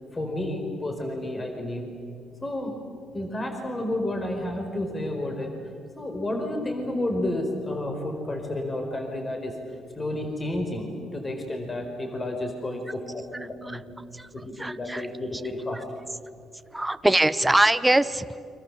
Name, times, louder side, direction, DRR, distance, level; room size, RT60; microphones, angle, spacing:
voice 1, 0.1-1.9 2.4-2.8 3.1-5.5 6.0-9.5 10.0-13.8 14.3-15.8, left 1 dB, 25° left, 4 dB, 4.6 m, -31 dB
voice 2, 13.3-13.8 14.1-14.3 14.6-15.1 16.7-18.4, right 1 dB, 10° right, 12 dB, 1.0 m, -23 dB
29.5 x 25.0 x 7.4 m, 2.3 s
cardioid pair, 90°, 0 cm